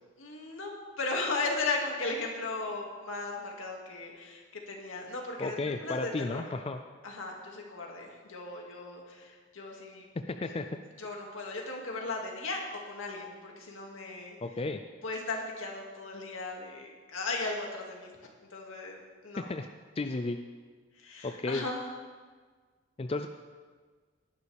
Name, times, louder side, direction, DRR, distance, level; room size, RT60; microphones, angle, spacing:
voice 1, 0.2-0.7 1.0-6.4 7.0-10.1 10.4-10.6 11.0-12.6 12.9-14.4 15.0-18.1 18.5-19.5 21.0-22.0, left 3 dB, 80° left, 0 dB, 2.3 m, -36 dB
voice 2, 5.4-6.8 10.3-10.7 14.4-14.8 19.5-19.7 20.0-20.4 21.2-21.6 23.0-23.3, left 3 dB, 30° left, 7 dB, 0.4 m, -33 dB
18.0 x 10.5 x 3.5 m, 1.5 s
head